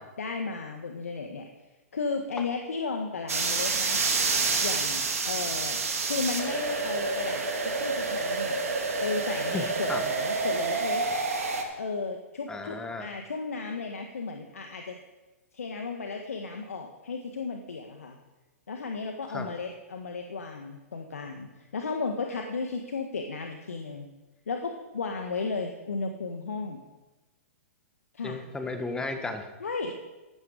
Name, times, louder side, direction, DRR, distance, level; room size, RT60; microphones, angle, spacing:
voice 1, 0.0-1.5 1.9-4.0 4.6-7.5 7.8-8.6 9.0-11.0 11.8-15.0 15.5-18.2 18.7-24.1 24.5-26.8 28.1-28.4 29.6-29.9, left 4 dB, 70° left, 4 dB, 1.5 m, -34 dB
sound 1, 3.3-11.6, right 4 dB, 70° right, 2.7 m, -28 dB
voice 2, 9.5-10.0 12.5-13.1 19.3-19.5 28.2-29.5, left 3 dB, 10° left, 6 dB, 1.7 m, -34 dB
15.5 x 12.5 x 5.1 m, 1.1 s
figure-of-eight pair, 110°, 8 cm